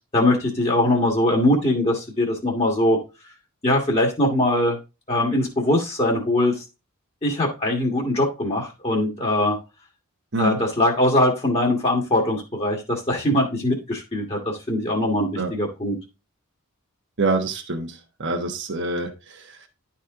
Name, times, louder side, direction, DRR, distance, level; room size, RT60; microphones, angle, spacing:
voice 1, 0.1-3.0 3.6-4.8 5.1-6.6 7.2-9.6 10.4-16.0, left 1 dB, 30° left, -2 dB, 1.7 m, -21 dB
voice 2, 17.2-19.7, right 2 dB, 55° right, 4 dB, 1.2 m, -26 dB
11.0 x 4.3 x 3.7 m, 0.27 s
head